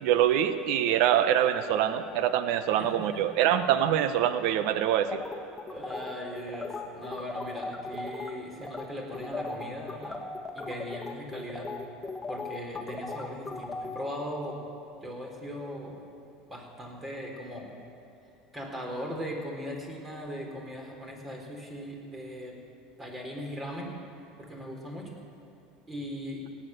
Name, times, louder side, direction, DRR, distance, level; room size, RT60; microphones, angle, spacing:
voice 1, 0.0-5.2, right 10 dB, 65° right, 11 dB, 0.9 m, -25 dB
voice 2, 2.8-3.2 5.7-10.2 10.5-11.7 12.3-14.6 15.0-16.0 16.5-17.7 18.5-22.6 23.0-24.0 24.4-25.2 25.9-26.5, equal, 20° right, 1 dB, 4.0 m, -39 dB
sound 1, 5.1-8.3 8.6-8.9 9.1-14.0, left 3 dB, 15° left, 1.7 m, -37 dB
17.5 x 8.7 x 8.0 m, 2.7 s
hypercardioid pair, 90°, 0 cm